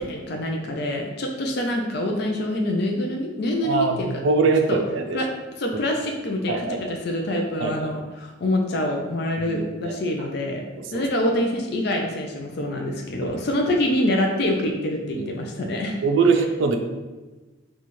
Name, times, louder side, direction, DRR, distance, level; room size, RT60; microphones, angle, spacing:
voice 1, 0.1-4.1 4.7-4.8 5.1-5.2 5.6-10.6 10.9-16.0, left 1 dB, 55° left, 1 dB, 0.4 m, -25 dB
voice 2, 3.6-5.3 5.7-5.8 6.5-7.0 7.6-7.9 9.4-10.0 10.8-11.0 13.2-13.3 15.2-15.3 16.0-16.8, right 4 dB, 75° right, 5 dB, 0.4 m, -23 dB
4.1 x 2.3 x 3.0 m, 1.2 s
head